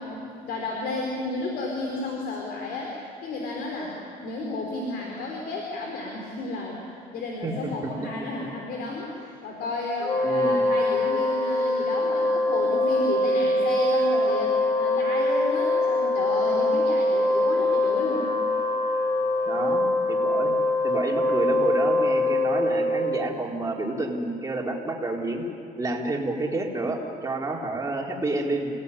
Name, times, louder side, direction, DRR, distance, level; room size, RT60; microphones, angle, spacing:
voice 1, 0.0-6.8 7.1-18.4, left 2 dB, 75° left, 0 dB, 4.3 m, -32 dB
voice 2, 7.4-7.9 10.2-10.7 19.4-20.6 20.8-25.4 25.8-28.7, right 2 dB, 20° right, -1 dB, 4.3 m, -29 dB
Wind instrument woodwind instrument, 10.0-23.4, left 1 dB, 20° left, 4.2 m, -23 dB
28.0 x 18.0 x 10.0 m, 2.5 s
cardioid pair, 110°, 17 cm